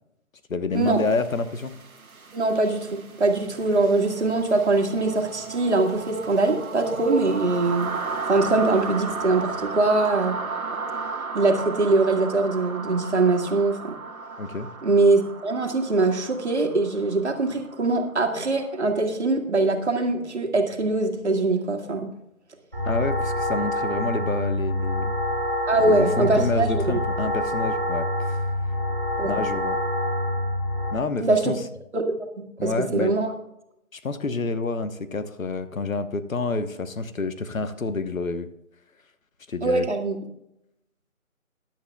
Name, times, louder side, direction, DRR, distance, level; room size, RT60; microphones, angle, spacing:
voice 1, 0.5-1.7 14.4-14.7 22.8-25.1 25.8-28.4 29.2-29.8 30.9-31.6 32.6-33.1 33.9-38.5 39.5-39.9, left 3 dB, 70° left, 11 dB, 1.1 m, -28 dB
sound 1, 0.9-18.7, right 4 dB, 80° right, 1.4 m, -35 dB
voice 2, 2.3-2.9 3.2-8.0 8.3-10.4 11.3-14.0 14.8-22.1 25.7-27.0 29.2-29.3 31.2-31.6 31.9-32.3 32.6-33.3 39.6-40.2, right 3 dB, 50° right, 3 dB, 1.8 m, -22 dB
sound 2, 22.7-30.9, left 1 dB, 10° right, 1.1 m, -26 dB
16.5 x 10.5 x 2.3 m, 0.81 s
figure-of-eight pair, 170°, 42 cm